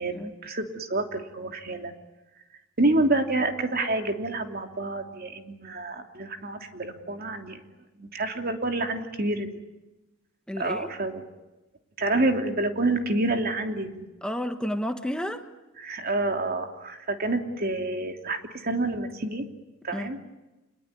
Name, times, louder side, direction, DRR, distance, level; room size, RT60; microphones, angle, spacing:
voice 1, 0.0-1.9 2.8-7.6 8.0-9.5 10.6-11.2 12.0-14.0 15.8-19.5 19.8-20.2, right 2 dB, 50° right, 5 dB, 2.9 m, -28 dB
voice 2, 10.5-10.9 14.2-15.4 19.9-20.1, equal, 5° left, 7 dB, 1.4 m, -31 dB
28.5 x 20.5 x 9.6 m, 1.1 s
head